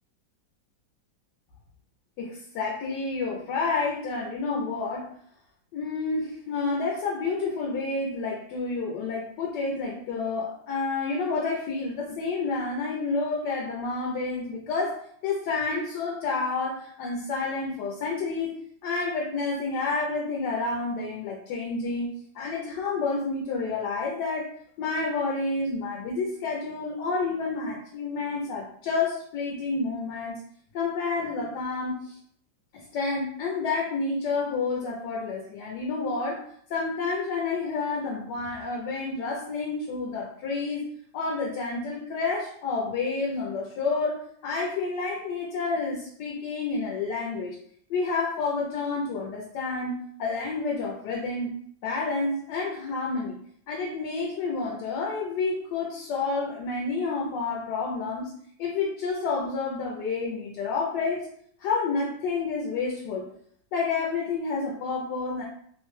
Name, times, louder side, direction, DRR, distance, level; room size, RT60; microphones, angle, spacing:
voice 1, 2.2-5.1 5.7-15.0 15.2-24.5 24.8-30.4 30.7-32.1 32.7-36.4 36.7-40.8 41.1-47.6 47.9-51.5 51.8-53.4 53.7-58.3 58.6-61.3 61.6-63.3 63.7-65.4, left 4 dB, 75° left, -1 dB, 1.1 m, -29 dB
3.0 x 2.1 x 3.1 m, 0.63 s
omnidirectional pair, 2.0 m